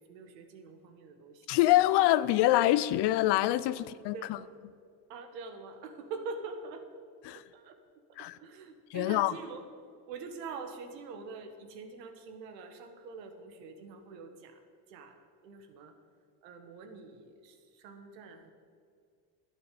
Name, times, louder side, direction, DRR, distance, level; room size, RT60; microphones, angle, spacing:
voice 1, 0.0-1.6 3.7-3.9 4.1-4.5 5.1-6.9 7.3-7.8 8.2-9.6 10.1-14.6 14.9-16.0 16.4-18.5, right 4 dB, 80° right, 1.7 m, -45 dB
voice 2, 1.5-4.1 7.3-7.4 8.2-8.3 8.9-9.3, left 15 dB, 55° left, 0.7 m, -25 dB
12.0 x 8.1 x 8.4 m
hypercardioid pair, 80°, 49 cm